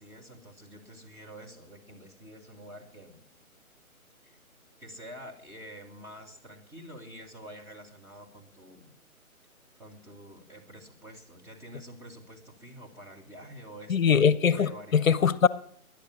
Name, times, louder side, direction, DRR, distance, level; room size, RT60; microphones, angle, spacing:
voice 1, 0.0-3.3 4.2-4.4 4.8-9.0 9.8-15.1, equal, 5° right, -3 dB, 1.9 m, -47 dB
voice 2, 13.9-15.5, left 7 dB, 65° left, 18 dB, 0.8 m, -22 dB
20.0 x 11.0 x 6.3 m, 0.68 s
figure-of-eight pair, 145°, 43 cm